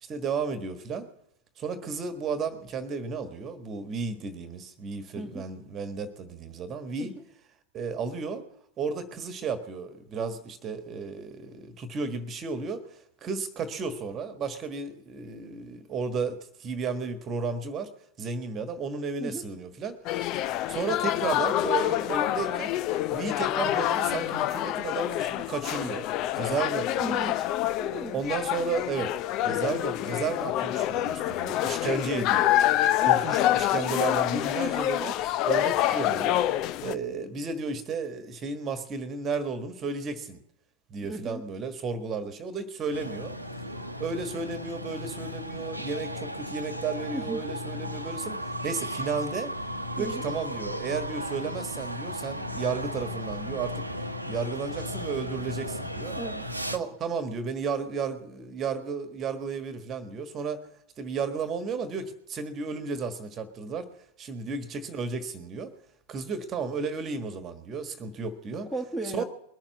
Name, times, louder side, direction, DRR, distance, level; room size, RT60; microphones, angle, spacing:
voice 1, 0.0-1.1 1.6-7.1 7.7-8.4 8.8-17.9 18.2-20.0 20.3-22.8 23.1-26.1 26.3-27.2 28.1-29.2 29.4-32.6 33.0-35.2 35.4-36.4 36.8-40.4 40.9-43.3 44.0-49.5 50.0-56.2 56.7-60.6 61.0-63.9 64.2-65.7 66.1-68.7 69.0-69.2, right 5 dB, 30° right, 9 dB, 1.5 m, -33 dB
voice 2, 5.2-5.5 7.0-7.2 19.2-19.4 27.0-27.5 27.8-28.2 32.1-32.4 41.1-41.4 47.1-47.5 50.0-50.3 56.1-56.5 68.7-69.2, right 2 dB, 5° left, 3 dB, 1.5 m, -36 dB
sound 1, 20.0-36.9, left 13 dB, 40° left, 0.5 m, -27 dB
sound 2, 42.9-56.8, equal, 85° right, 1.0 m, -35 dB
21.0 x 7.4 x 8.2 m, 0.79 s
figure-of-eight pair, 90°, 0 cm